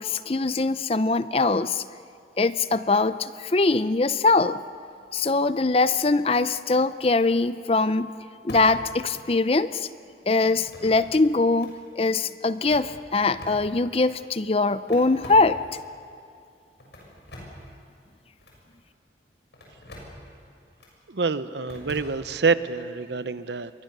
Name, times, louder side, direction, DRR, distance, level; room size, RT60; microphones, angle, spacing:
voice 1, 0.0-1.8 2.4-4.6 5.1-8.1 8.4-9.9 10.3-15.6, left 3 dB, 35° left, 13 dB, 0.5 m, -22 dB
Telephone hang off in different ways, 5.9-6.4 7.0-7.2 8.5-8.9 9.2-9.3 10.6-11.2 11.5-11.7 12.5-14.0 14.9-15.9 16.8-17.7 18.4-18.6 19.5-20.2 20.8-20.9 21.7-22.5, equal, 80° left, 6.5 m, -44 dB
voice 2, 21.1-23.7, right 4 dB, 80° right, 13 dB, 0.8 m, -26 dB
28.0 x 23.0 x 6.8 m, 2.5 s
head